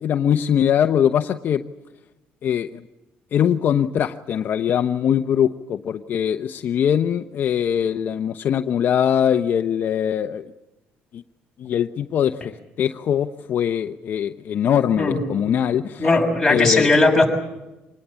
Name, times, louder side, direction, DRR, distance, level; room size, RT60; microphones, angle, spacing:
voice 1, 0.0-1.6 2.4-2.8 3.3-10.5 11.1-11.2 11.6-16.1 16.5-16.9, left 9 dB, 50° left, 7 dB, 0.8 m, -22 dB
voice 2, 16.0-17.3, left 2 dB, 5° left, -1 dB, 6.5 m, -17 dB
26.0 x 20.5 x 8.3 m, 1.0 s
cardioid pair, 130°, 4 cm